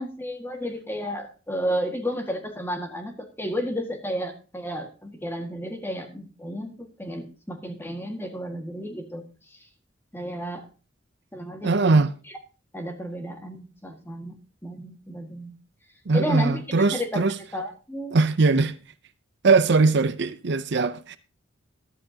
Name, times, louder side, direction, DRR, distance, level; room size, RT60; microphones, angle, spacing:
voice 1, 0.0-9.2 9.5-9.6 10.1-10.7 11.3-12.1 12.7-14.3 14.6-15.5 16.1-16.6 16.9-17.2 17.5-18.2, equal, 10° left, 1.8 m, -32 dB
voice 2, 11.6-12.1 16.1-17.3 18.1-18.7 19.4-21.2, right 3 dB, 60° right, 0.6 m, -20 dB
13.0 x 12.0 x 2.8 m
head